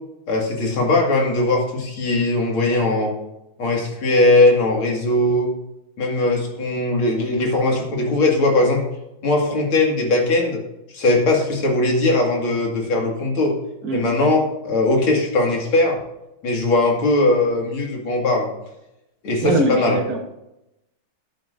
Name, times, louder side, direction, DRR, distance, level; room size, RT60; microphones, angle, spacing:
voice 1, 0.3-3.1 3.6-5.5 6.0-8.8 9.2-10.6 10.9-13.5 13.9-16.0 16.4-18.5 19.2-20.0, left 2 dB, 85° left, 0 dB, 3.0 m, -19 dB
voice 2, 19.4-20.3, right 2 dB, 50° right, 2 dB, 1.7 m, -23 dB
11.0 x 9.9 x 2.6 m, 0.88 s
omnidirectional pair, 2.2 m